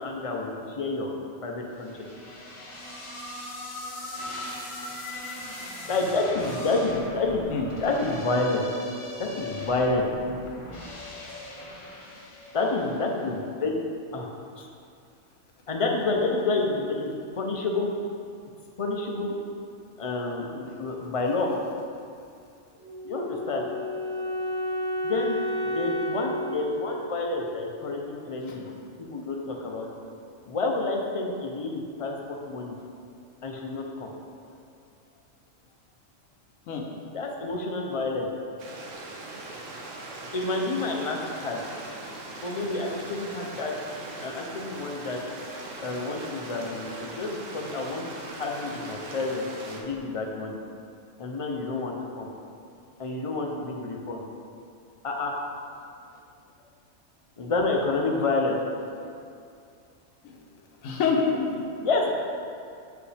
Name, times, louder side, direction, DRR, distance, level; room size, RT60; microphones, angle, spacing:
voice 1, 0.0-2.1 5.9-7.4 7.8-8.6 9.2-10.1 12.5-13.8 14.1-14.3 14.6-14.7 15.7-17.9 18.8-19.3 20.0-21.5 23.0-23.7 25.0-25.4 25.6-28.7 29.0-29.9 30.5-32.7 33.4-34.1 37.1-38.3 40.3-41.6 42.4-43.7 44.2-45.2 45.8-48.0 48.3-50.6 51.2-52.3 53.0-54.2 55.0-55.4 57.4-58.6 61.8-62.1, left 3 dB, 50° left, 0 dB, 0.4 m, -29 dB
sound 1, 1.8-13.1, left 2 dB, 30° left, 0.8 m, -40 dB
Wind instrument woodwind instrument, 22.8-27.9, equal, 5° right, 0.6 m, -32 dB
Stream, 38.6-49.8, right 2 dB, 75° right, 1.1 m, -40 dB
voice 2, 60.8-61.6, left 5 dB, 85° left, 1 dB, 1.1 m, -26 dB
7.0 x 4.9 x 3.3 m, 2.4 s
omnidirectional pair, 1.4 m